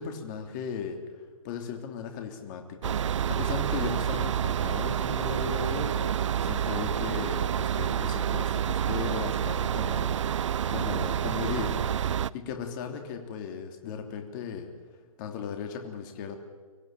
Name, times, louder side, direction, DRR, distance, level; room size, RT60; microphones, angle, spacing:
voice 1, 0.0-10.2 10.7-11.8 12.3-14.7 15.2-16.3, left 6 dB, 35° left, 4 dB, 3.0 m, -37 dB
sound 1, 2.8-12.3, right 9 dB, 60° right, 0.6 m, -28 dB
25.0 x 15.0 x 9.2 m, 1.5 s
hypercardioid pair, 140°, 18 cm